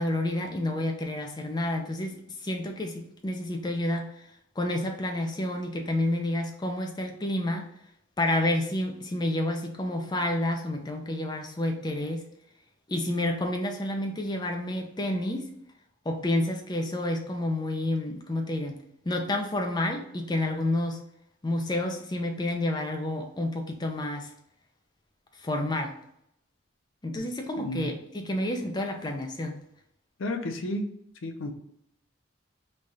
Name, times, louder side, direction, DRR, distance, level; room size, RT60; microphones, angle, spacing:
voice 1, 0.0-4.1 4.6-7.7 8.2-12.2 12.9-15.5 16.1-21.0 21.4-24.3 25.4-25.9 27.0-29.6, left 1 dB, 20° left, 3 dB, 0.5 m, -29 dB
voice 2, 27.6-27.9 30.2-30.9 31.2-31.5, left 1 dB, 70° left, 5 dB, 0.5 m, -32 dB
3.2 x 2.3 x 4.0 m, 0.74 s
head